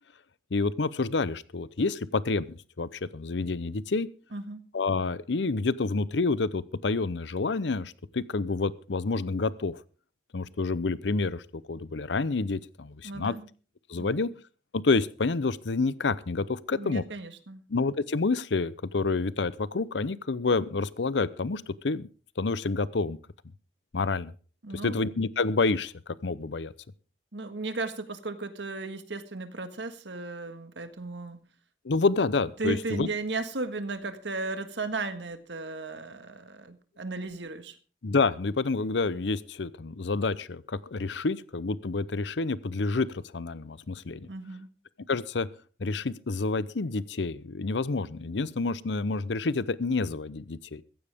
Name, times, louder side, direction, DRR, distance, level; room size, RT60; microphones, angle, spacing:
voice 1, 0.5-4.1 4.7-9.8 10.3-13.3 13.9-14.3 14.7-17.0 17.7-22.1 22.4-23.2 23.9-24.3 24.8-26.7 31.8-33.1 38.0-43.1 43.3-44.3 45.1-45.5 45.8-50.8, left 3 dB, 85° left, 18 dB, 0.7 m, -28 dB
voice 2, 4.3-4.6 13.0-13.5 14.0-14.3 16.7-17.6 24.6-24.9 27.3-31.4 32.6-37.8 44.3-44.7, right 3 dB, 85° right, 9 dB, 1.7 m, -35 dB
15.0 x 15.0 x 3.6 m, 0.37 s
head